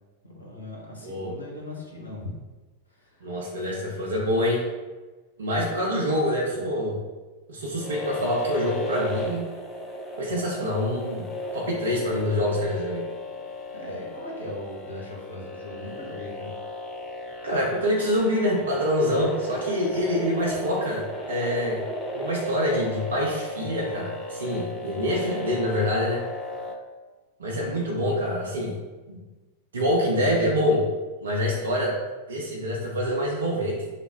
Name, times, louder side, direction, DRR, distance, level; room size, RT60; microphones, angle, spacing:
voice 1, 0.2-2.3 2.9-3.3 5.5-6.0 13.7-16.6, left 1 dB, 75° left, -3 dB, 0.8 m, -39 dB
voice 2, 1.0-1.3 3.2-4.6 5.4-6.9 7.5-9.4 10.2-11.3 11.5-13.1 17.4-21.8 22.1-26.2 27.4-28.7 29.1-29.2 29.7-30.9 31.2-32.0 32.3-33.9, equal, 70° right, -3 dB, 0.6 m, -26 dB
sound 1, 7.8-26.8, left 2 dB, 15° left, 0.5 m, -35 dB
3.3 x 2.0 x 4.2 m, 1.2 s
figure-of-eight pair, 90°, 0 cm